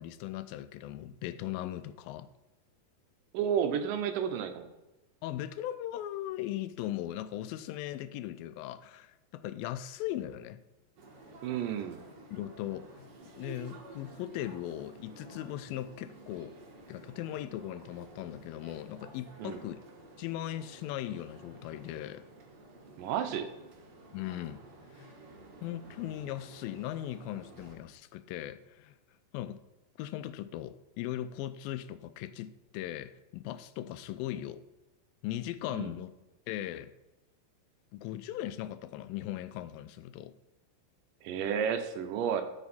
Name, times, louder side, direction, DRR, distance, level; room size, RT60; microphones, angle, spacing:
voice 1, 0.0-2.3 5.2-10.6 12.3-16.5 16.9-19.8 20.2-22.3 24.1-24.6 24.9-25.1 25.6-29.0 29.3-29.6 30.0-34.6 35.2-36.1 36.5-36.9 37.9-40.3, left 13 dB, 90° left, 13 dB, 2.3 m, -38 dB
voice 2, 3.3-4.7 11.4-12.0 19.4-19.6 23.0-23.5 35.8-35.9 41.2-42.4, right 8 dB, 75° right, 8 dB, 2.3 m, -31 dB
sound 1, 11.0-27.8, right 2 dB, 55° right, 2.4 m, -52 dB
13.0 x 5.8 x 4.1 m, 1.0 s
omnidirectional pair, 4.0 m